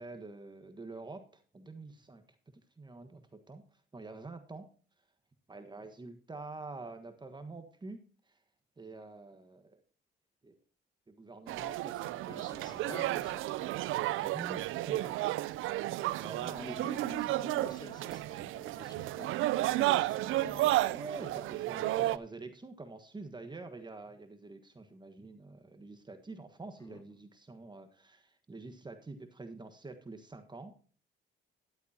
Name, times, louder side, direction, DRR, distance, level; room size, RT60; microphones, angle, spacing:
voice 1, 0.0-2.2 2.5-4.7 5.5-8.0 8.2-8.4 8.8-9.8 10.4-10.6 11.1-12.2 12.5-12.9 14.1-16.9 20.9-30.7, right 3 dB, 20° right, 1.5 m, -47 dB
sound 1, 11.5-22.2, right 16 dB, 90° right, 0.5 m, -32 dB
voice 2, 12.2-13.5 16.4-20.8 26.8-27.0, left 2 dB, 20° left, 2.4 m, -49 dB
13.0 x 11.5 x 2.8 m
cardioid pair, 90°, 20 cm